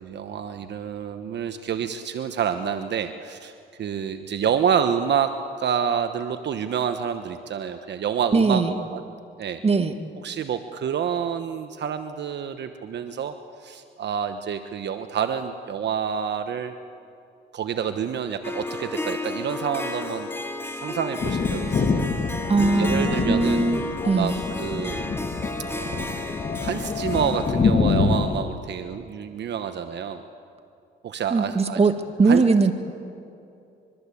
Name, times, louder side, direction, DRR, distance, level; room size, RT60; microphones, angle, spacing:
voice 1, 0.0-3.5 3.8-9.0 9.4-9.6 10.2-13.3 13.6-16.8 17.5-20.3 20.8-22.0 22.8-23.6 24.1-25.1 25.7-26.1 26.6-30.2 31.0-31.8 32.3-32.4, right 7 dB, 60° right, 8 dB, 1.1 m, -28 dB
voice 2, 8.3-8.7 9.6-9.9 22.5-23.8 24.0-24.4 31.3-31.9 32.2-32.7, right 4 dB, 30° right, 8 dB, 1.9 m, -20 dB
Harp, 18.4-27.5, left 2 dB, 10° left, 2.1 m, -33 dB
Thunder, 21.2-28.4, left 4 dB, 40° left, 2.0 m, -26 dB
24.5 x 23.0 x 8.5 m, 2.6 s
cardioid pair, 90°, 20 cm